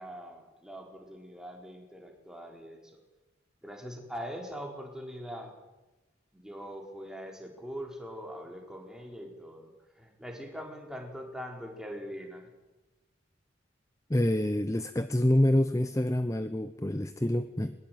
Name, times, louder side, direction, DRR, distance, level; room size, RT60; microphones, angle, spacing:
voice 1, 0.0-3.0 3.6-5.6 6.3-12.5, equal, 5° right, 1 dB, 4.5 m, -42 dB
voice 2, 14.1-17.7, left 1 dB, 15° left, 11 dB, 0.8 m, -27 dB
22.0 x 21.0 x 9.3 m, 1.1 s
head